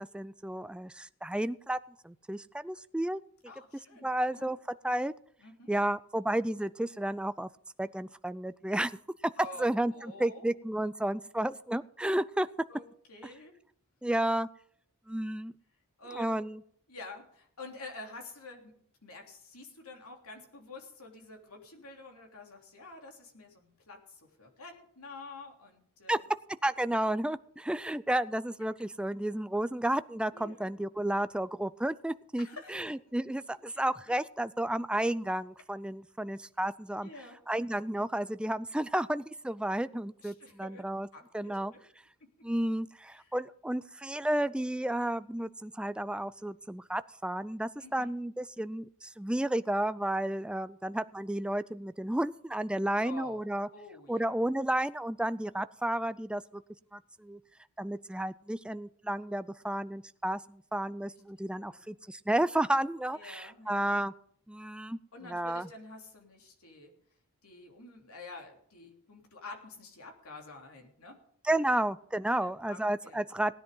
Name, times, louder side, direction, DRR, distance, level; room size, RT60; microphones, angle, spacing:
voice 1, 0.0-1.8 2.0-3.2 4.0-4.6 4.8-5.1 5.7-7.5 7.8-8.9 9.2-9.3 9.6-12.5 14.0-14.5 15.1-15.5 16.2-16.6 26.1-26.2 26.6-37.1 37.5-41.1 41.3-41.7 42.4-53.7 54.1-56.6 56.9-57.4 57.8-64.1 64.5-65.0 65.2-65.7 71.4-73.5, right 1 dB, 5° right, 14 dB, 0.4 m, -32 dB
voice 2, 3.5-4.5 5.4-5.7 9.4-9.7 9.9-10.5 12.7-12.8 13.1-13.5 16.0-16.4 16.9-18.7 19.0-26.3 26.9-27.1 30.3-30.7 32.4-32.9 33.7-33.9 37.0-37.4 40.2-41.8 43.2-43.3 47.8-48.1 53.0-53.4 53.7-54.3 61.6-61.9 63.1-63.9 65.1-66.9 67.4-71.2 72.3-73.2, left 2 dB, 70° left, 2 dB, 3.3 m, -48 dB
18.5 x 10.5 x 3.8 m, 0.63 s
head